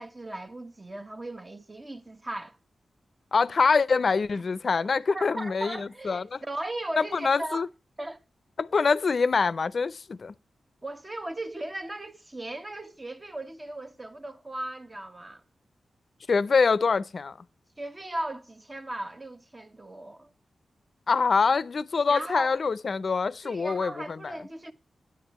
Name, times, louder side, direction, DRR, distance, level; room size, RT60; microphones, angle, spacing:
voice 1, 0.0-2.6 5.1-7.7 8.0-8.2 10.8-15.4 17.8-20.3 22.1-22.6 23.4-24.7, right 1 dB, 30° right, 1.3 m, -37 dB
voice 2, 3.3-6.4 7.0-7.7 8.6-10.3 16.3-17.4 21.1-23.9 24.2-24.3, left 4 dB, 60° left, 0.6 m, -25 dB
9.9 x 8.1 x 4.2 m
cardioid pair, 45°, 0 cm